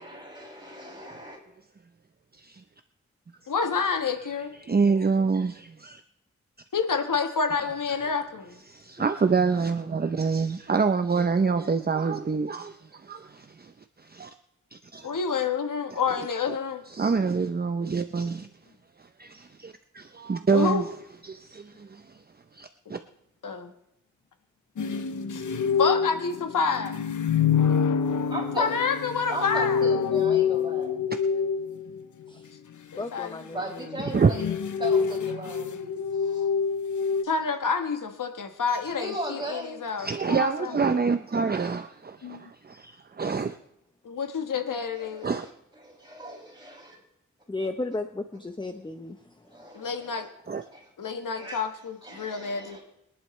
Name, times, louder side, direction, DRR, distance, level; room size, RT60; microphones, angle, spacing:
voice 1, 0.0-1.4 27.3-27.4 28.3-28.7 29.3-31.1 33.5-34.5 34.8-36.5 39.0-39.9 45.0-45.3 45.8-47.0 49.5-50.3 50.7-51.6 52.0-52.8, right 1 dB, 15° right, 6.6 m, -38 dB
voice 2, 2.3-2.6 4.5-6.0 7.5-7.6 8.7-13.7 14.0-14.3 14.7-15.1 15.9-16.0 16.5-16.6 16.9-18.5 19.0-20.9 21.2-22.1 22.5-23.0 34.1-34.3 40.0-43.6 45.2-45.5 50.5-50.6, right 5 dB, 30° right, 0.6 m, -27 dB
voice 3, 3.5-4.5 6.7-8.6 15.0-16.8 20.5-20.8 23.4-23.7 25.3-25.4 25.8-27.0 28.6-29.8 32.9-33.4 37.2-40.8 42.2-42.5 44.0-45.3 49.7-50.3 51.0-52.8, left 5 dB, 90° left, 1.4 m, -28 dB
sound 1, 24.8-32.0 33.9-37.2, left 6 dB, 75° left, 0.8 m, -26 dB
voice 4, 33.0-33.9 47.5-49.2, left 2 dB, 15° left, 0.8 m, -34 dB
23.5 x 11.0 x 3.2 m
wide cardioid pair, 105°, 31 cm